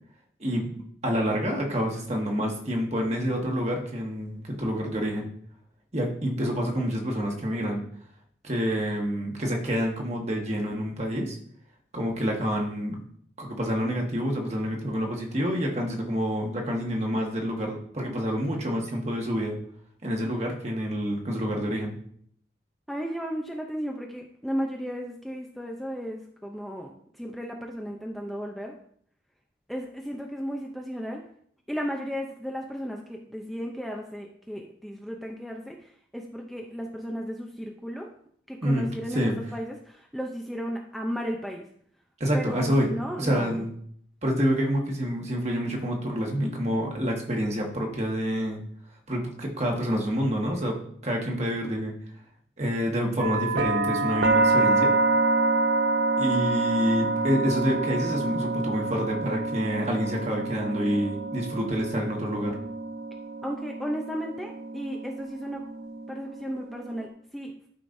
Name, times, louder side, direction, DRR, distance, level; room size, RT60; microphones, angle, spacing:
voice 1, 0.4-0.7 1.0-5.3 5.9-7.8 8.4-11.4 11.9-13.0 13.4-19.6 20.0-21.9 38.6-39.4 42.2-42.9 43.2-43.7 44.2-48.6 49.1-51.9 52.6-54.9 56.2-62.6, equal, 40° right, 0 dB, 1.5 m, -28 dB
voice 2, 22.9-26.9 27.2-28.8 29.7-31.2 31.7-38.1 38.5-41.7 42.3-43.7 63.4-65.7 66.1-67.7, equal, ahead, 0 dB, 0.6 m, -34 dB
sound 1, 53.2-67.1, right 3 dB, 60° right, 0.6 m, -27 dB
12.0 x 5.1 x 2.7 m, 0.62 s
head